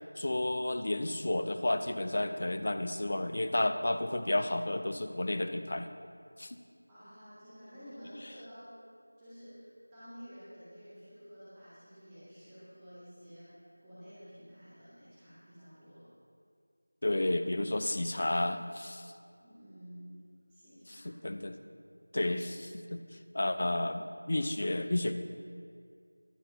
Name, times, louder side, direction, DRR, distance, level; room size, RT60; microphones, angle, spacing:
voice 1, 0.2-5.9 6.4-6.6 17.0-19.1 20.9-21.6 22.1-23.0 23.3-25.1, left 1 dB, 35° left, 9 dB, 0.5 m, -31 dB
voice 2, 6.9-8.7 9.2-16.1 19.4-20.2 20.5-21.1, equal, 10° right, -15 dB, 1.9 m, -51 dB
21.0 x 8.7 x 2.7 m, 2.2 s
figure-of-eight pair, 175°, 0 cm